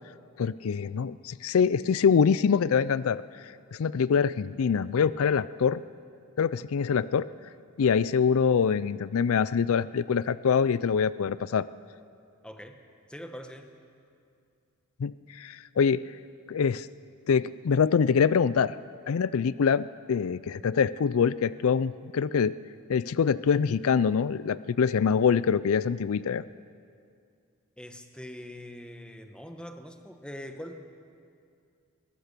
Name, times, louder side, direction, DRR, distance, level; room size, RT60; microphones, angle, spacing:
voice 1, 0.4-5.8 6.4-7.3 7.8-11.6 15.0-16.0 16.5-16.9 17.3-18.7 19.1-22.5 22.9-26.4, left 6 dB, 75° left, 17 dB, 0.4 m, -25 dB
voice 2, 12.4-12.8 13.1-13.7 27.8-30.8, equal, 5° left, 5 dB, 1.2 m, -43 dB
21.5 x 19.5 x 6.8 m, 2.4 s
head